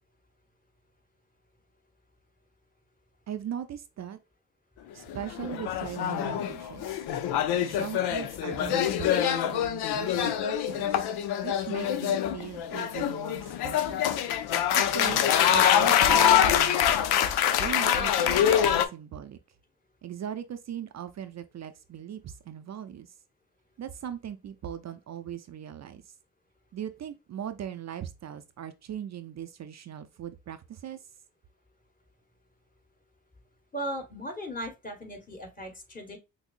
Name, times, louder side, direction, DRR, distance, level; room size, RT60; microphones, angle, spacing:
voice 1, 3.3-4.2 4.9-7.0 7.6-11.0 11.4-14.1 14.7-17.0 17.6-19.4 20.0-23.1 23.8-26.1 26.7-31.0, right 9 dB, 45° right, 0.5 m, -39 dB
sound 1, 5.1-18.9, left 9 dB, 75° left, 0.6 m, -25 dB
voice 2, 33.7-36.2, equal, 20° left, 1.7 m, -37 dB
5.8 x 2.0 x 2.5 m
supercardioid pair, 50°, 39 cm